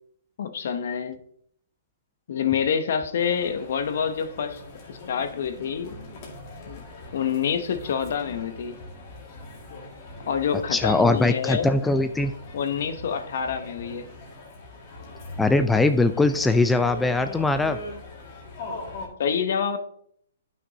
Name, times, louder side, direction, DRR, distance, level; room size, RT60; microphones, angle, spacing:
voice 1, 0.4-1.2 2.3-4.6 4.9-5.9 6.7-6.8 7.1-8.8 10.3-11.7 12.5-14.1 19.2-19.8, left 7 dB, 60° left, 9 dB, 0.8 m, -27 dB
sound 1, 3.2-19.1, left 2 dB, 40° left, 2.0 m, -41 dB
voice 2, 10.5-12.3 15.4-17.8, left 2 dB, 5° left, 8 dB, 0.4 m, -21 dB
9.4 x 5.9 x 2.8 m, 0.67 s
hypercardioid pair, 140°, 0 cm